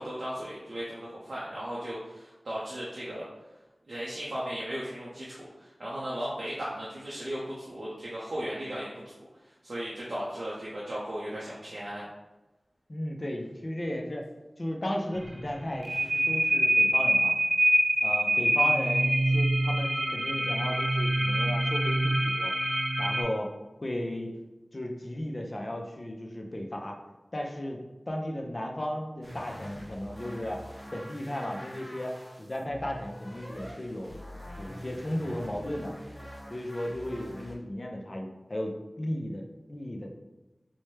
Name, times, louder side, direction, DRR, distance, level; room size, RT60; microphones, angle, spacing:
voice 1, 0.0-3.3 3.9-12.1, equal, 75° right, -7 dB, 0.6 m, -36 dB
voice 2, 12.9-14.3 14.6-17.3 18.0-22.5 23.0-23.5 23.8-24.3 24.7-26.9 27.3-30.6 30.9-34.2 34.6-36.0 36.5-40.1, left 1 dB, 40° left, 1 dB, 0.5 m, -35 dB
sound 1, 15.1-23.2, right 1 dB, 20° right, 0.6 m, -25 dB
sound 2, 29.2-37.6, equal, 20° left, 0.9 m, -45 dB
4.3 x 2.1 x 3.1 m, 1.1 s
wide cardioid pair, 65°, 0 cm